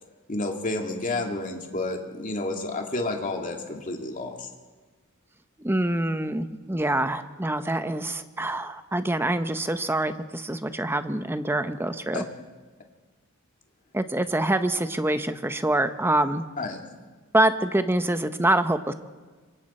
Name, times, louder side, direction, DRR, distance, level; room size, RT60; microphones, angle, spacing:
voice 1, 0.3-4.5 12.1-12.2 16.6-16.8, left 2 dB, 40° left, 2 dB, 2.3 m, -30 dB
voice 2, 5.6-12.2 13.9-16.4 17.3-18.9, right 1 dB, 10° right, 9 dB, 0.8 m, -25 dB
26.0 x 24.0 x 4.4 m, 1.3 s
head